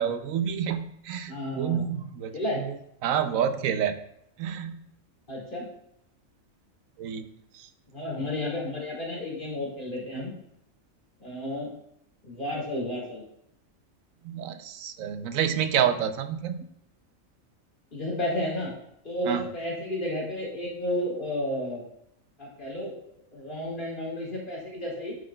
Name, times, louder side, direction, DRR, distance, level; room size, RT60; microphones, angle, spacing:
voice 1, 0.0-2.8 3.0-4.0 4.4-4.9 7.0-7.3 7.5-7.7 14.2-16.6 19.3-19.4, right 8 dB, 80° right, 9 dB, 1.0 m, -28 dB
voice 2, 1.3-1.9 2.3-2.6 5.3-5.7 7.9-10.3 11.2-11.7 12.2-13.2 17.9-18.7 19.0-21.8 22.4-22.9 23.3-25.2, left 1 dB, 40° left, -4 dB, 2.3 m, -32 dB
9.3 x 6.0 x 2.3 m, 0.75 s
omnidirectional pair, 1.4 m